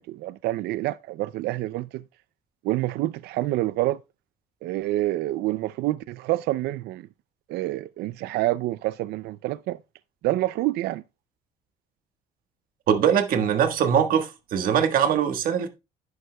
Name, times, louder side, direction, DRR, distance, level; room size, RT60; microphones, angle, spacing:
voice 1, 0.0-2.0 2.6-4.0 4.6-7.1 7.5-9.8 10.2-11.0, right 16 dB, 70° right, 0.4 m, -27 dB
voice 2, 12.9-15.7, right 8 dB, 55° right, 1.4 m, -22 dB
11.0 x 9.2 x 2.2 m
cardioid pair, 160°, 18 cm